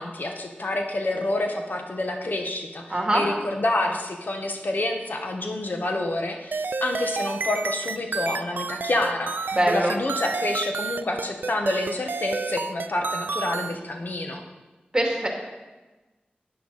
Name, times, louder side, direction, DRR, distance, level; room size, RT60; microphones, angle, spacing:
voice 1, 0.0-14.4, left 2 dB, 60° left, 3 dB, 1.2 m, -28 dB
voice 2, 2.9-3.3 9.5-9.9 14.9-15.3, right 1 dB, 20° right, 0 dB, 2.3 m, -22 dB
sound 1, 6.5-13.8, right 4 dB, 70° right, 0.4 m, -30 dB
11.5 x 9.3 x 4.1 m, 1.2 s
wide cardioid pair, 65°, 3 cm